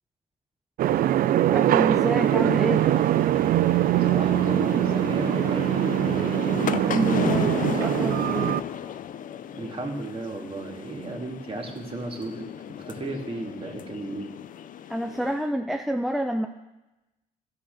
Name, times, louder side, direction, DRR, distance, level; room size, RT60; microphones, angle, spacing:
sound 1, 0.8-8.6, right 12 dB, 60° right, 0.4 m, -22 dB
voice 1, 1.5-2.9 6.9-8.5 14.9-16.5, equal, ahead, 5 dB, 0.6 m, -28 dB
sound 2, 2.0-15.5, left 9 dB, 55° left, 0.5 m, -35 dB
voice 2, 4.0-6.0 9.5-14.4, right 2 dB, 35° right, 0 dB, 2.4 m, -34 dB
13.5 x 5.0 x 6.9 m, 1.0 s
supercardioid pair, 70°, 16 cm